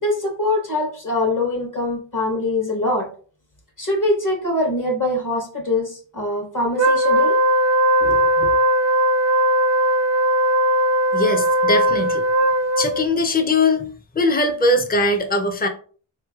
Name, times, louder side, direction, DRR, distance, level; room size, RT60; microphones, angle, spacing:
voice 1, 0.0-3.1 3.8-7.4 8.0-8.5, left 2 dB, 40° left, 0 dB, 1.1 m, -23 dB
Wind instrument woodwind instrument, 6.8-13.1, right 1 dB, 35° right, 0.4 m, -18 dB
voice 2, 11.1-12.2 12.8-13.9 14.1-15.7, left 2 dB, 20° left, 4 dB, 0.5 m, -20 dB
3.9 x 3.1 x 2.3 m, 0.42 s
wide cardioid pair, 85°, 47 cm